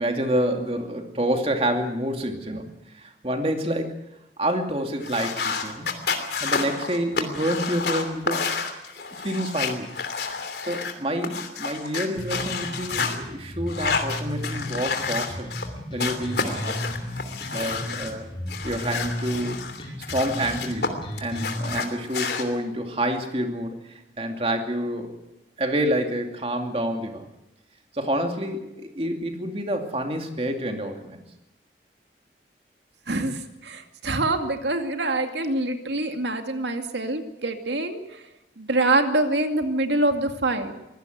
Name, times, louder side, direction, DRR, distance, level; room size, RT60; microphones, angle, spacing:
voice 1, 0.0-4.0 4.4-5.9 6.4-8.5 9.0-9.9 10.6-15.5 15.9-16.7 17.5-18.3 18.6-19.6 20.1-25.1 25.6-27.3 27.9-31.2, right 1 dB, 35° right, 4 dB, 2.7 m, -28 dB
sound 1, 5.0-13.2 13.7-15.7 16.0-18.1 18.5-20.9 21.2-22.4, left 5 dB, 70° left, 2.9 m, -30 dB
sound 2, 12.2-21.8, equal, 30° left, 5.8 m, -35 dB
voice 2, 33.1-38.2 38.6-40.7, right 2 dB, 90° right, 6 dB, 2.4 m, -25 dB
23.5 x 17.0 x 8.1 m, 0.95 s
head